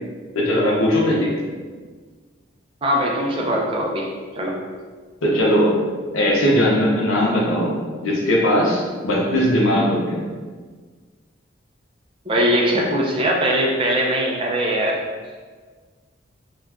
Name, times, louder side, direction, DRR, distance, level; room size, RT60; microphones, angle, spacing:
voice 1, 0.3-1.3 5.2-5.7 6.1-10.2, equal, 85° left, -3 dB, 0.7 m, -19 dB
voice 2, 2.8-4.1 4.4-4.6 12.3-15.0, equal, 25° right, -1 dB, 0.4 m, -21 dB
2.4 x 2.2 x 3.4 m, 1.5 s
head